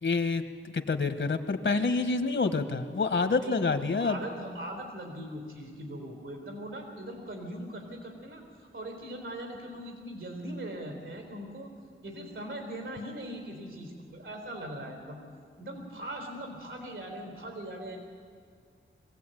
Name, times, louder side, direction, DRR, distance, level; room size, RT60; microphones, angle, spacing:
voice 1, 0.0-4.2, left 4 dB, 70° left, 9 dB, 1.4 m, -28 dB
voice 2, 4.0-11.7 12.0-15.2 15.6-18.0, right 1 dB, 85° right, 3 dB, 4.0 m, -40 dB
23.0 x 16.5 x 9.2 m, 2.1 s
wide cardioid pair, 95°, 20 cm